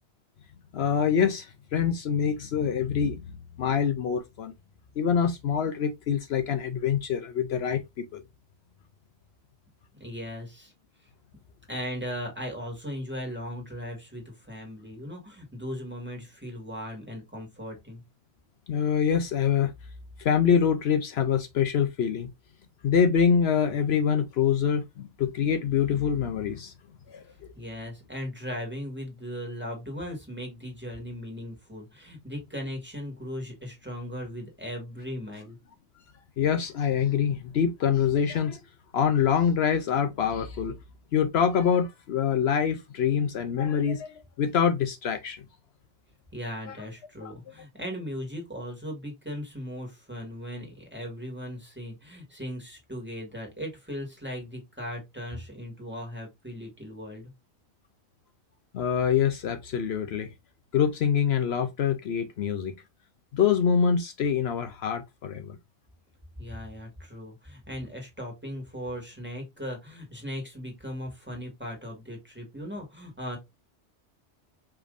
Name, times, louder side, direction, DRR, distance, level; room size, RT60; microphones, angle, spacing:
voice 1, 0.7-3.2 3.6-4.5 5.0-8.2 18.7-19.7 20.2-22.3 22.8-26.7 27.1-27.5 36.4-38.6 38.9-40.8 41.1-45.4 46.7-46.8 47.2-47.3 58.7-60.3 60.7-62.7 63.3-65.6, left 7 dB, 70° left, 0.8 m, -25 dB
voice 2, 10.0-10.7 11.7-18.0 27.6-35.6 46.3-57.3 66.4-73.4, equal, 10° right, 1.8 m, -38 dB
5.0 x 3.5 x 2.5 m
omnidirectional pair, 1.2 m